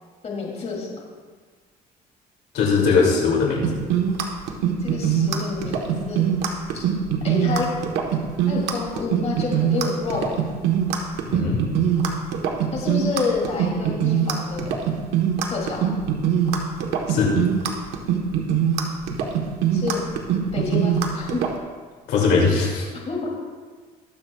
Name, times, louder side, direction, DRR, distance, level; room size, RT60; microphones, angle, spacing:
voice 1, 0.2-1.0 4.8-6.3 6.7-6.8 7.2-7.7 8.5-10.4 12.7-14.8 15.5-15.8 19.7-20.0 20.5-21.4 23.0-23.3, left 4 dB, 40° left, -2 dB, 2.9 m, -28 dB
voice 2, 2.5-3.8 11.3-11.6 17.1-17.4 22.1-22.8, left 4 dB, 80° left, -3 dB, 2.7 m, -20 dB
sound 1, 3.6-21.5, right 8 dB, 90° right, 1.3 m, -22 dB
22.5 x 7.7 x 2.4 m, 1.5 s
cardioid pair, 110°, 17 cm